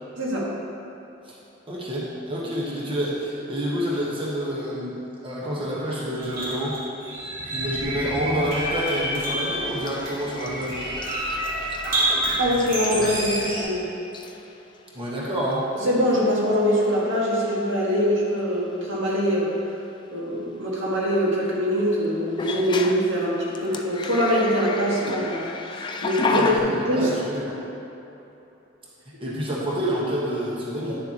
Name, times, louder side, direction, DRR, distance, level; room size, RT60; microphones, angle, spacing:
voice 1, 0.2-0.5 12.4-13.9 15.7-19.5 20.1-27.1, equal, 90° right, -5 dB, 1.8 m, -23 dB
voice 2, 1.7-6.8 7.4-10.8 14.9-15.7 26.3-27.6 29.2-31.0, equal, 30° right, -6 dB, 1.2 m, -28 dB
sound 1, 6.2-13.6, right 1 dB, 50° right, 1.7 m, -28 dB
sound 2, 9.6-13.8 14.1-14.5 15.5-15.6 16.1-16.6 16.8-17.1 19.2-19.3 22.3-26.6, left 3 dB, 25° left, 0.3 m, -33 dB
9.8 x 6.7 x 2.9 m, 3.0 s
head